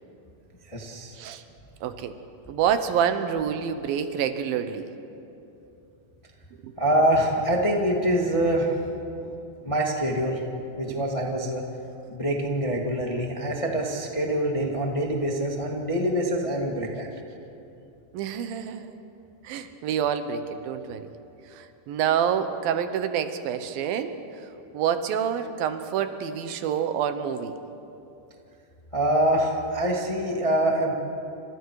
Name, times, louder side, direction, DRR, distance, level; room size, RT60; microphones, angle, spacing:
voice 1, 0.7-1.1 6.8-8.8 9.6-10.4 10.7-11.6 12.1-17.1 28.9-30.9, right 1 dB, 15° left, 0 dB, 1.2 m, -25 dB
voice 2, 1.8-2.1 2.5-4.9 6.6-6.7 10.9-11.0 18.1-19.0 19.4-21.1 21.5-24.1 24.7-27.6, right 8 dB, 80° right, 9 dB, 2.8 m, -27 dB
29.0 x 27.0 x 4.8 m, 2.8 s
omnidirectional pair, 4.1 m